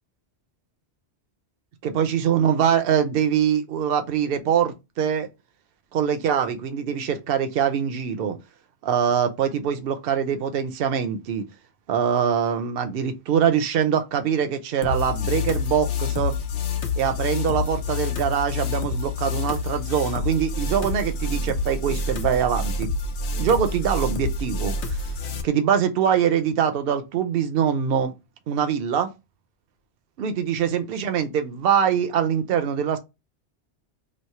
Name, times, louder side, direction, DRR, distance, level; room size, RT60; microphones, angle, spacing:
voice 1, 1.8-5.3 5.9-8.4 8.8-11.4 11.9-16.4 17.0-22.9 23.4-25.0 25.4-28.1 28.5-29.1 30.2-33.0, right 8 dB, 65° right, 0.7 m, -23 dB
sound 1, 14.8-25.4, left 3 dB, 80° left, 0.9 m, -27 dB
3.1 x 2.0 x 4.1 m
omnidirectional pair, 1.1 m